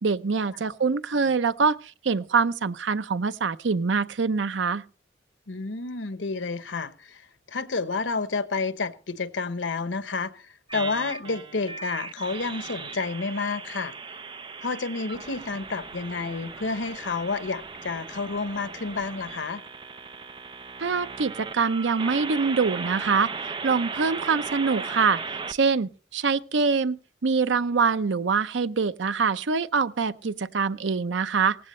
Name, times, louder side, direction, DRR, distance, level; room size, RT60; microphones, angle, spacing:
voice 1, 0.0-1.8 2.0-4.8 20.8-23.3 23.6-25.2 25.5-31.6, right 5 dB, 85° right, 0.6 m, -24 dB
voice 2, 5.5-7.2 7.5-13.9 14.6-19.6, left 4 dB, 90° left, 1.1 m, -30 dB
sound 1, 10.7-25.5, right 4 dB, 25° right, 0.6 m, -37 dB
18.0 x 15.5 x 3.2 m
head